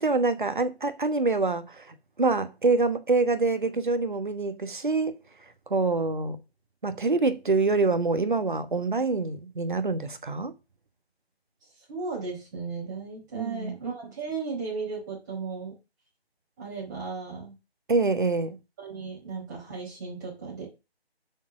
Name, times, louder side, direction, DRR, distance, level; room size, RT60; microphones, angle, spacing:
voice 1, 0.0-5.2 5.7-6.4 6.8-10.5 13.3-13.7 17.9-18.6, right 3 dB, 50° right, 1.2 m, -26 dB
voice 2, 11.9-15.7 16.6-17.5 18.8-20.6, right 4 dB, 15° right, 4.5 m, -35 dB
7.1 x 6.7 x 6.2 m
figure-of-eight pair, 155°, 32 cm